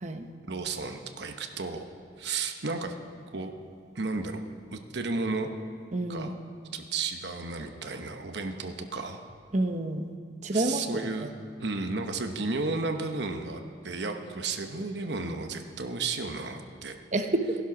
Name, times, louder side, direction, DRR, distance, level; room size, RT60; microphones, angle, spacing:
voice 1, 0.5-1.9 2.2-2.9 3.3-3.5 3.9-4.4 4.7-5.5 6.1-6.3 6.7-9.2 10.5-11.3 11.6-17.0, right 3 dB, 70° right, 5 dB, 1.0 m, -33 dB
voice 2, 5.9-6.3 9.5-10.1 10.4-10.8 11.2-11.3 17.1-17.6, right 2 dB, 40° right, 6 dB, 0.9 m, -28 dB
16.0 x 11.0 x 6.0 m, 2.1 s
head